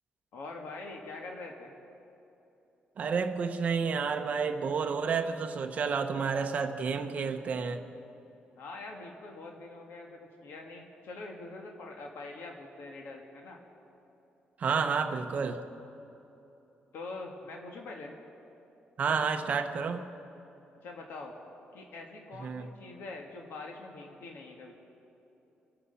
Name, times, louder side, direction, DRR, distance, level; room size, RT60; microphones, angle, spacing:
voice 1, 0.3-1.7 8.6-13.6 16.9-18.2 20.8-21.3 21.7-24.7, left 3 dB, 75° left, 1 dB, 1.8 m, -44 dB
voice 2, 3.0-7.8 14.6-15.6 19.0-20.0 22.4-22.7, right 5 dB, 40° right, 5 dB, 1.0 m, -30 dB
26.5 x 9.1 x 5.7 m, 2.9 s
wide cardioid pair, 175°, 4 cm